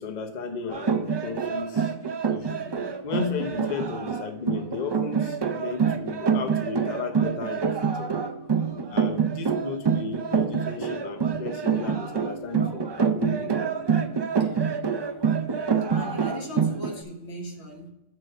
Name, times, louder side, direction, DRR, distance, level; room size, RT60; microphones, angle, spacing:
voice 1, 0.0-1.9 2.3-2.6 3.0-8.1 8.9-13.7 15.5-15.7, left 5 dB, 45° left, 6 dB, 0.9 m, -34 dB
sound 1, 0.7-17.0, right 6 dB, 40° right, 0.4 m, -26 dB
voice 2, 2.4-3.0 3.3-3.4 8.7-9.1 14.3-14.7 15.0-15.3 15.7-17.9, equal, 90° left, 1 dB, 1.7 m, -40 dB
6.4 x 4.8 x 6.3 m, 0.93 s
omnidirectional pair, 1.1 m